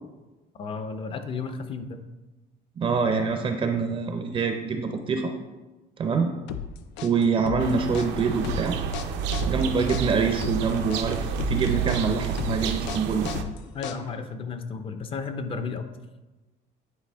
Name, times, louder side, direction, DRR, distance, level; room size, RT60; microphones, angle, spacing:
voice 1, 0.6-2.0 13.7-15.8, left 4 dB, 30° left, 8 dB, 0.6 m, -33 dB
voice 2, 2.8-5.3 6.0-6.3 7.0-8.8 9.5-13.3, right 5 dB, 30° right, 5 dB, 0.5 m, -25 dB
sound 1, 6.5-14.3, left 8 dB, 85° left, 0.6 m, -35 dB
sound 2, 7.6-13.4, right 7 dB, 75° right, 0.6 m, -30 dB
9.8 x 4.8 x 3.4 m, 1.1 s
cardioid pair, 160°, 18 cm